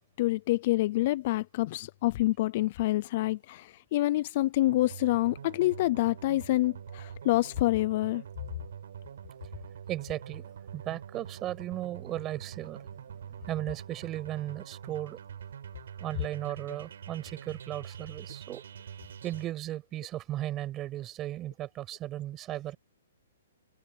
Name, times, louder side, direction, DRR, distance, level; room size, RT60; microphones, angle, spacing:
voice 1, 0.2-8.2, left 17 dB, 35° left, 0.4 m, -27 dB
sound 1, 4.7-19.4, right 8 dB, 60° right, 7.9 m, -45 dB
voice 2, 9.9-15.2 16.0-18.6 19.2-22.8, right 13 dB, 15° right, 6.7 m, -36 dB
hypercardioid pair, 170°, 0 cm